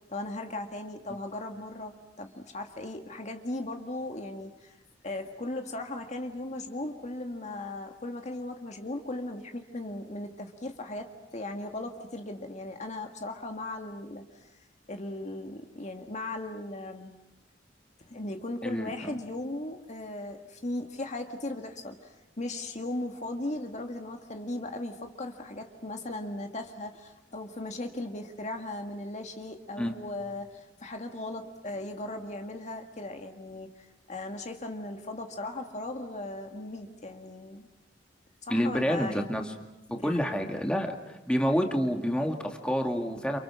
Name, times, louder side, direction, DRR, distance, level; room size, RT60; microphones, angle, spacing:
voice 1, 0.1-4.7 5.0-14.5 14.9-17.2 18.0-37.7 38.5-39.3 39.9-40.3, left 2 dB, 40° left, 4 dB, 1.8 m, -37 dB
voice 2, 18.6-19.1 29.8-29.9 38.5-39.4 40.0-41.0 41.3-43.4, equal, 5° left, 2 dB, 2.3 m, -28 dB
29.5 x 28.5 x 6.2 m, 0.93 s
head